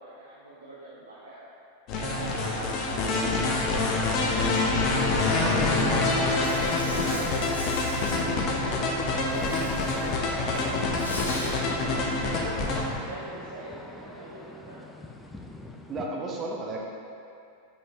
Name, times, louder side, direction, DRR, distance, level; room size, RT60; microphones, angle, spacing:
voice 1, 0.0-1.4 2.0-4.4 5.0-5.4 5.7-5.9 6.7-7.9 8.3-10.5 11.1-12.5 13.0-14.8, right 2 dB, 75° right, -9 dB, 1.2 m, -42 dB
sound 1, 1.9-13.0, left 3 dB, 40° left, 0.8 m, -26 dB
sound 2, 3.5-16.1, left 1 dB, 5° left, 0.5 m, -43 dB
voice 2, 5.4-6.0 7.4-7.5 15.9-16.8, right 2 dB, 25° right, -1 dB, 1.0 m, -34 dB
Insect, 6.4-8.2 9.3-10.1 10.4-11.5, left 1 dB, 80° left, 1.2 m, -38 dB
7.7 x 5.8 x 2.9 m, 2.5 s
figure-of-eight pair, 90°, 0 cm